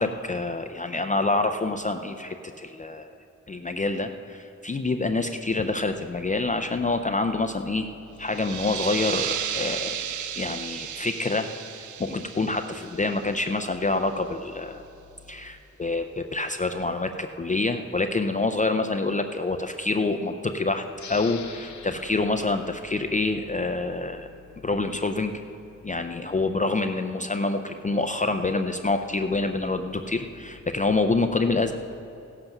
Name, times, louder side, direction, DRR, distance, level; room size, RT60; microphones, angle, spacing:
voice 1, 0.0-3.1 3.5-7.9 8.2-10.0 10.4-11.5 12.0-14.8 15.3-24.3 24.6-25.3 25.8-31.7, left 3 dB, 25° left, 6 dB, 0.4 m, -27 dB
sound 1, 8.2-13.6, right 9 dB, 70° right, 0.5 m, -33 dB
sound 2, 20.9-24.2, left 6 dB, 70° left, 0.8 m, -45 dB
16.0 x 7.8 x 5.9 m, 2.9 s
wide cardioid pair, 165°, 30 cm